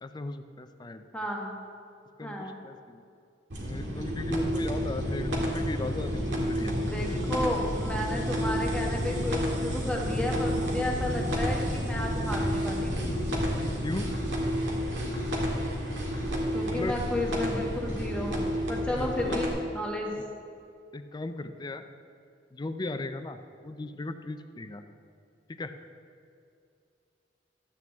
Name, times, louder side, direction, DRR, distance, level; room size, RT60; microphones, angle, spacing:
voice 1, 0.0-1.0 2.2-3.0 3.6-6.8 13.6-14.1 16.7-17.4 18.9-19.4 20.9-21.8 22.5-24.8 25.6-25.7, left 2 dB, 25° left, 9 dB, 0.5 m, -37 dB
voice 2, 1.1-1.6 2.2-2.6 6.6-13.1 16.5-20.1, left 1 dB, 5° left, -1 dB, 1.3 m, -33 dB
sound 1, 3.5-19.5, equal, 75° right, 1.8 m, -30 dB
12.5 x 8.5 x 3.5 m, 2.4 s
head